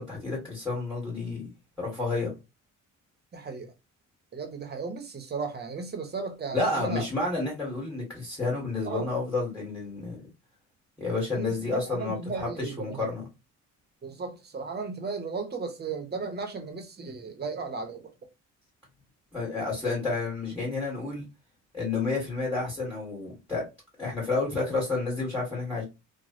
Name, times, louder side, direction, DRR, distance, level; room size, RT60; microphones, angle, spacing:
voice 1, 0.0-1.4 1.8-2.3 6.5-10.2 11.0-13.2 19.3-21.2 21.7-23.6 24.0-25.8, left 3 dB, 5° left, 1.8 m, -30 dB
voice 2, 3.3-3.7 4.3-7.0 8.8-9.1 11.3-13.1 14.0-18.1, right 4 dB, 35° right, 0.9 m, -35 dB
3.0 x 2.3 x 2.7 m
cardioid pair, 90°, 30 cm